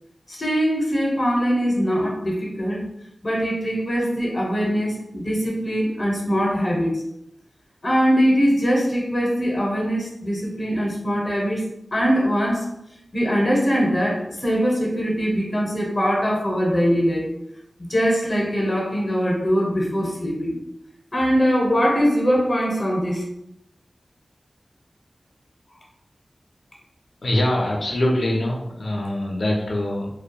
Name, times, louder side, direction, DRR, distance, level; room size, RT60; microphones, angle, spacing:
voice 1, 0.3-2.8 3.2-7.0 7.8-12.7 13.1-17.3 17.9-20.6 21.1-23.2, equal, 35° left, -1 dB, 0.7 m, -22 dB
voice 2, 27.2-30.1, left 1 dB, 80° left, -2 dB, 0.4 m, -23 dB
2.7 x 2.2 x 2.2 m, 0.79 s
wide cardioid pair, 80°, 0 cm